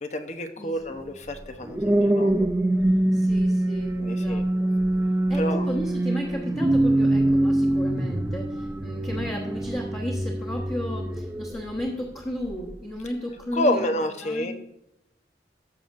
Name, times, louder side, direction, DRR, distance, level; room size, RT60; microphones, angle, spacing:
voice 1, 0.0-2.5 4.0-4.5 5.3-5.7 13.5-14.5, left 1 dB, 40° left, 6 dB, 0.9 m, -29 dB
voice 2, 0.6-1.0 3.1-4.7 5.3-14.5, equal, 20° left, -4 dB, 1.4 m, -34 dB
sound 1, 1.3-11.9 12.4-12.7, right 1 dB, 15° right, 0.4 m, -24 dB
14.5 x 6.8 x 2.6 m, 0.83 s
head